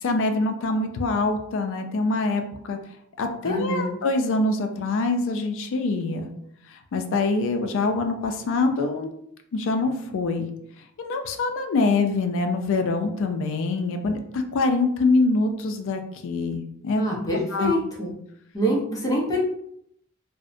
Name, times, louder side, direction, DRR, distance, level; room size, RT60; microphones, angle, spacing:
voice 1, 0.0-2.8 3.2-6.3 6.7-9.1 9.5-10.5 11.0-17.8, left 3 dB, 65° left, 6 dB, 0.3 m, -25 dB
voice 2, 3.4-3.9 17.0-18.1 18.5-19.4, equal, 15° left, -3 dB, 0.5 m, -25 dB
2.6 x 2.0 x 2.4 m, 0.72 s
head